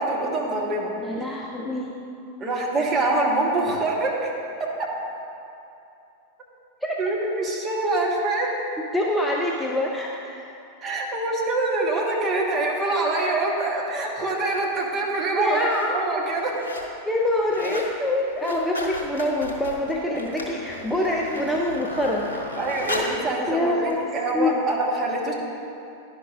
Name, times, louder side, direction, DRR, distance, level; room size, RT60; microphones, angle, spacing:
voice 1, 0.0-0.9 2.4-4.3 4.6-4.9 7.0-8.5 10.8-15.7 15.9-16.7 20.1-20.3 22.6-25.3, right 2 dB, 25° right, -2 dB, 1.2 m, -25 dB
voice 2, 1.0-1.9 6.8-7.0 8.9-10.5 15.4-16.0 17.0-22.3 23.5-24.6, left 1 dB, 5° left, -2 dB, 0.5 m, -25 dB
sound 1, 14.6-14.8 15.5-15.9 16.2-16.9 17.2-17.9 18.3-23.2 23.9-24.0, left 1 dB, 75° left, 0.8 m, -34 dB
10.5 x 5.3 x 2.5 m, 2.7 s
figure-of-eight pair, 90°, 0 cm